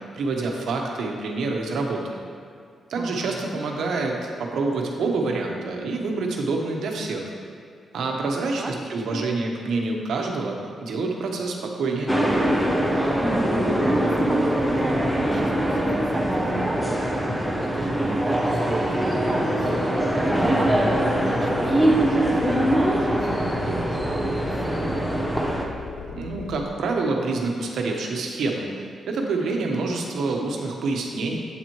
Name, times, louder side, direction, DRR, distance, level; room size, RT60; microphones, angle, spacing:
voice 1, 0.1-2.2 2.9-7.3 7.9-12.1 26.0-31.4, right 3 dB, 75° right, 1 dB, 1.0 m, -27 dB
voice 2, 3.0-3.6 8.6-9.3 13.9-17.0 17.6-19.9 20.4-25.3, right 3 dB, 25° right, 2 dB, 0.3 m, -35 dB
sound 1, 12.1-25.6, right 1 dB, ahead, 0.7 m, -22 dB
sound 2, 20.4-26.7, left 5 dB, 85° left, 0.4 m, -38 dB
8.2 x 7.4 x 3.1 m, 2.2 s
wide cardioid pair, 150°, 0 cm